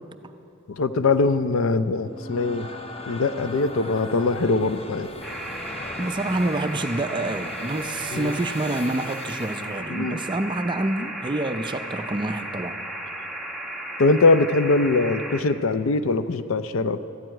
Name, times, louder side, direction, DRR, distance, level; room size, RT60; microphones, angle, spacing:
voice 1, 0.7-2.7 3.1-5.1 8.1-8.4 9.9-10.2 14.0-17.1, left 3 dB, 65° left, 12 dB, 0.5 m, -22 dB
sound 1, 1.9-9.7, left 2 dB, 30° left, 0.8 m, -38 dB
sound 2, 5.2-15.4, right 1 dB, ahead, 0.9 m, -35 dB
voice 2, 6.0-12.8, right 2 dB, 20° right, 9 dB, 0.4 m, -27 dB
13.5 x 7.7 x 9.0 m, 2.9 s
head